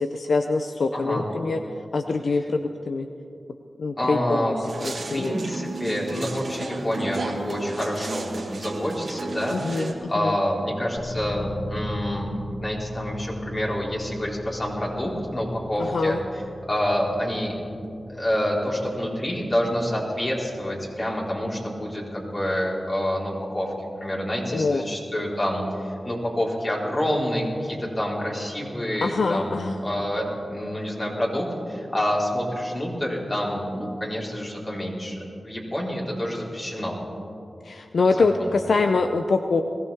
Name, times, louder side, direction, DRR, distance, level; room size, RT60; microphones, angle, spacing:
voice 1, 0.0-1.6 1.9-3.1 3.8-4.5 4.8-5.3 9.5-10.3 15.8-16.2 24.5-24.8 29.0-29.8 37.6-39.6, left 3 dB, 75° left, 6 dB, 0.6 m, -24 dB
voice 2, 0.9-1.2 4.0-4.6 4.9-12.3 12.6-16.2 16.7-17.5 18.1-23.7 24.0-35.2 35.4-37.0 38.1-38.5, equal, 35° left, -4 dB, 4.2 m, -27 dB
sound 1, 4.6-9.9, right 3 dB, 70° right, 1.7 m, -33 dB
sound 2, 11.0-27.7, equal, 20° left, 3.0 m, -40 dB
21.5 x 16.0 x 3.5 m, 2.7 s
cardioid pair, 50°, 0 cm